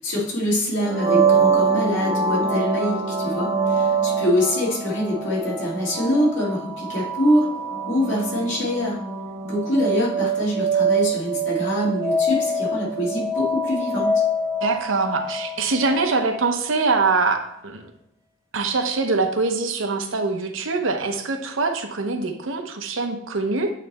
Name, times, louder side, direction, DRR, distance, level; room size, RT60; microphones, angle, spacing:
voice 1, 0.0-7.5 7.9-9.0 9.4-14.2, equal, 65° left, -5 dB, 2.2 m, -24 dB
sound 1, 0.8-16.5, right 3 dB, 15° right, 0.7 m, -24 dB
voice 2, 14.6-17.4 17.6-17.9 18.5-23.7, right 3 dB, 75° right, 5 dB, 0.8 m, -23 dB
8.5 x 3.3 x 4.1 m, 0.78 s
head